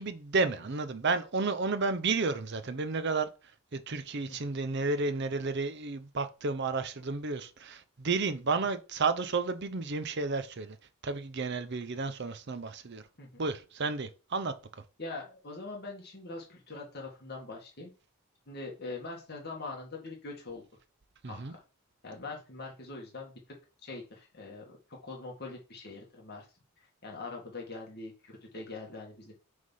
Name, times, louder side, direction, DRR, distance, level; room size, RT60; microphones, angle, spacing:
voice 1, 0.0-3.3 3.7-10.8 11.0-13.0 13.4-14.5 21.2-21.5, right 4 dB, 50° right, 0.6 m, -32 dB
voice 2, 15.0-17.9 18.5-20.6 21.3-21.6 22.0-23.4 23.8-26.5 26.8-29.3, left 3 dB, 45° left, 1.7 m, -43 dB
6.3 x 3.6 x 5.5 m
head